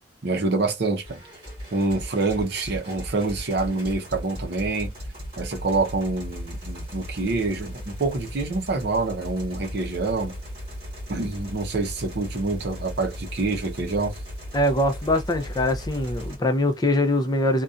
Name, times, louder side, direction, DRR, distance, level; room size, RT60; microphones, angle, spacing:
voice 1, 0.2-1.2 1.7-4.9 5.4-10.3 11.1-14.1, right 3 dB, 55° right, 0.6 m, -26 dB
sound 1, 1.0-16.4, equal, 30° right, 1.3 m, -37 dB
voice 2, 14.5-17.6, left 1 dB, 20° left, 0.4 m, -23 dB
2.6 x 2.2 x 2.3 m
head